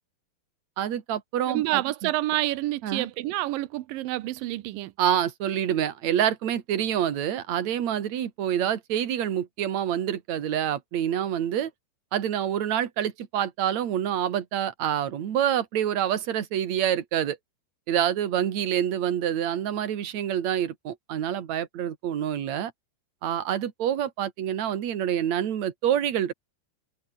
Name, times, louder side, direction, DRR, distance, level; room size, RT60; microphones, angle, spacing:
voice 1, 0.8-2.1 2.8-3.1 5.0-11.7 12.1-17.4 17.9-22.7 23.2-26.3, right 10 dB, 50° right, 2.6 m, -27 dB
voice 2, 1.5-4.9, right 16 dB, 90° right, 1.9 m, -28 dB
omnidirectional pair, 5.2 m